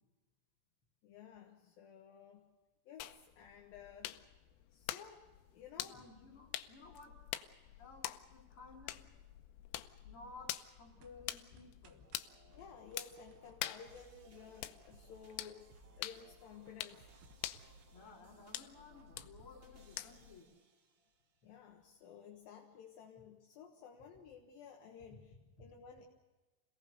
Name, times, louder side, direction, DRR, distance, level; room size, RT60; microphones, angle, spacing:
voice 1, 1.0-2.5 2.9-4.2 4.7-5.3 5.5-6.0 12.5-15.7 16.0-17.1 21.4-25.3 25.6-26.1, left 7 dB, 65° left, 2 dB, 2.6 m, -54 dB
sound 1, 3.0-20.4, left 14 dB, 85° left, 3.4 m, -47 dB
voice 2, 5.8-7.2 7.8-9.1 10.0-12.1 17.9-20.5 25.1-25.2, left 3 dB, 30° left, -1 dB, 4.1 m, -56 dB
sound 2, 10.9-17.9, right 8 dB, 70° right, 3.2 m, -70 dB
sound 3, 12.0-21.2, right 4 dB, 45° right, 2.8 m, -64 dB
27.5 x 18.5 x 6.7 m, 1.2 s
omnidirectional pair, 5.5 m